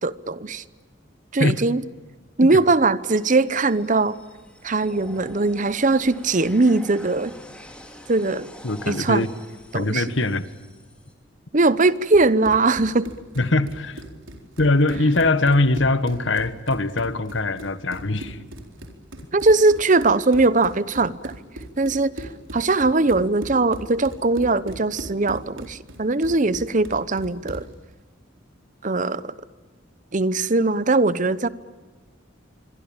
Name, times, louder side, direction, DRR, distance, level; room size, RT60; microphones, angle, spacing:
voice 1, 0.0-0.6 1.3-1.8 2.4-4.2 4.6-7.3 8.1-8.5 8.9-9.3 9.7-10.0 11.5-13.1 19.3-21.3 21.8-27.6 28.8-29.3 30.1-31.5, right 3 dB, 40° right, 16 dB, 0.9 m, -20 dB
sound 1, 3.2-11.1, left 1 dB, 5° left, 3.2 m, -46 dB
voice 2, 8.6-9.3 9.7-10.4 13.4-14.0 14.6-18.4, left 2 dB, 75° left, 13 dB, 1.5 m, -22 dB
Run, 11.9-27.7, right 1 dB, 85° right, 4.2 m, -39 dB
26.0 x 23.5 x 8.9 m, 1.4 s
head